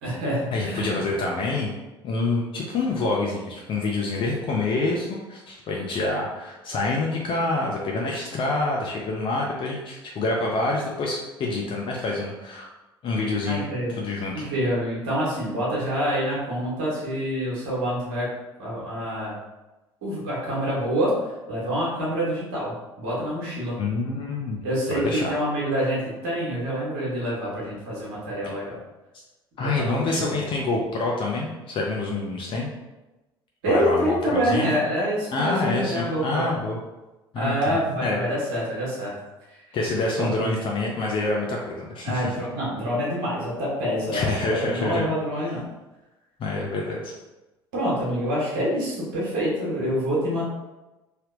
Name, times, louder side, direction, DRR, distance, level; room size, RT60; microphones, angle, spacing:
voice 1, 0.0-1.0 13.4-13.9 14.3-18.3 18.6-19.3 20.0-21.1 21.5-23.8 24.6-28.8 29.6-30.3 33.6-36.5 37.3-39.2 40.2-40.5 42.0-45.6 47.7-50.4, equal, 65° right, -6 dB, 1.1 m, -26 dB
voice 2, 0.5-1.7 2.0-12.7 13.0-13.6 13.9-14.5 23.8-24.6 24.9-25.3 29.6-32.7 33.7-34.7 35.3-36.8 37.3-38.2 39.7-42.3 44.1-45.1 46.4-47.1, left 2 dB, 40° left, -2 dB, 0.6 m, -27 dB
3.3 x 2.8 x 2.5 m, 1.1 s
figure-of-eight pair, 60°, 13 cm